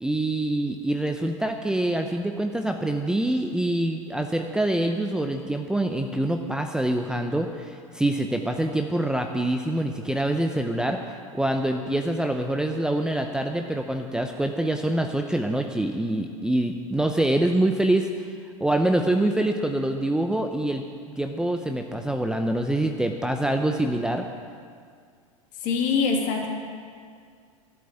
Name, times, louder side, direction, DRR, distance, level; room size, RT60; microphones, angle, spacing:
voice 1, 0.0-11.0 11.3-18.1 18.6-20.8 21.2-24.3, right 1 dB, 5° right, 4 dB, 0.7 m, -25 dB
voice 2, 25.6-26.5, left 5 dB, 45° left, 1 dB, 2.7 m, -24 dB
13.0 x 7.9 x 9.0 m, 2.1 s
figure-of-eight pair, 90°, 18 cm